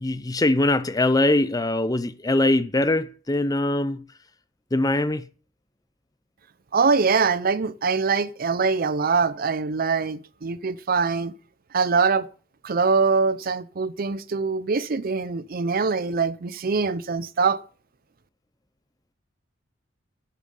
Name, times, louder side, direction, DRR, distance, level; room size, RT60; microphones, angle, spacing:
voice 1, 0.0-4.0 4.7-5.2, left 2 dB, 20° left, 0.6 m, -22 dB
voice 2, 6.7-11.3 11.7-12.3 12.6-17.6, right 4 dB, 50° right, 0.5 m, -23 dB
13.0 x 8.4 x 5.4 m
head